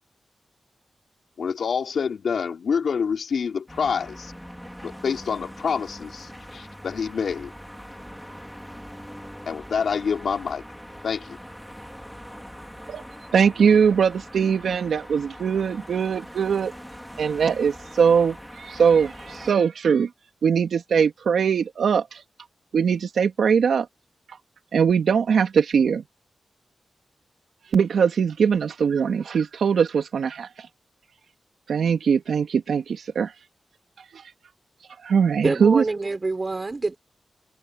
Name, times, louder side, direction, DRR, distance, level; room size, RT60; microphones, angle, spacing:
voice 1, 1.4-4.3 4.8-7.5 9.5-10.6 11.0-11.4, left 6 dB, 70° left, 3.6 m, -27 dB
sound 1, 3.7-19.5, equal, ahead, 4.0 m, -42 dB
voice 2, 13.3-16.7 17.2-20.1 20.4-22.2 22.7-23.9 24.7-26.0 27.7-30.5 31.7-33.3 34.1-34.2 35.0-35.8, right 6 dB, 90° right, 3.0 m, -21 dB
voice 3, 35.4-37.0, right 3 dB, 30° right, 4.9 m, -26 dB
wide cardioid pair, 165°, 0 cm